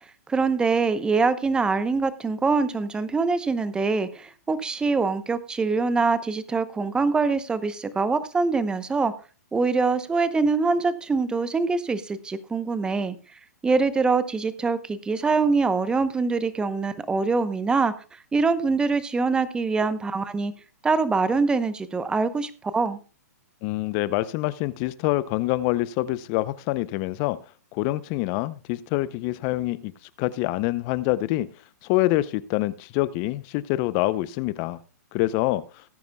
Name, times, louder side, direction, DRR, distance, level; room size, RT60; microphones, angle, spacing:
voice 1, 0.3-9.1 9.5-13.1 13.6-17.9 18.3-20.5 20.8-23.0, right 4 dB, 10° right, 13 dB, 0.8 m, -24 dB
voice 2, 23.6-27.4 27.7-29.9 30.2-31.5 31.8-34.8 35.1-35.6, left 17 dB, 35° left, 17 dB, 0.6 m, -26 dB
19.0 x 9.3 x 2.3 m, 0.34 s
hypercardioid pair, 140°, 9 cm